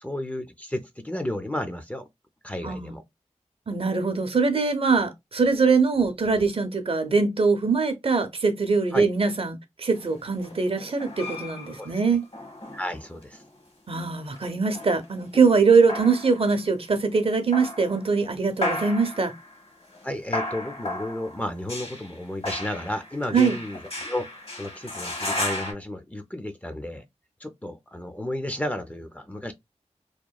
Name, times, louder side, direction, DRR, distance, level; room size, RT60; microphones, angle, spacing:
voice 1, 0.0-2.1 2.4-3.0 8.9-9.1 11.8-11.9 12.7-13.4 20.0-27.0 27.4-29.5, left 1 dB, 10° left, 0.4 m, -33 dB
voice 2, 2.6-2.9 3.7-12.2 13.9-19.3 23.3-23.6, right 4 dB, 50° right, 0.6 m, -22 dB
sound 1, 9.9-13.5 14.1-16.6 17.3-18.2 18.6-25.7, left 1 dB, 50° left, 1.1 m, -35 dB
2.9 x 2.2 x 2.2 m
cardioid pair, 45°, 12 cm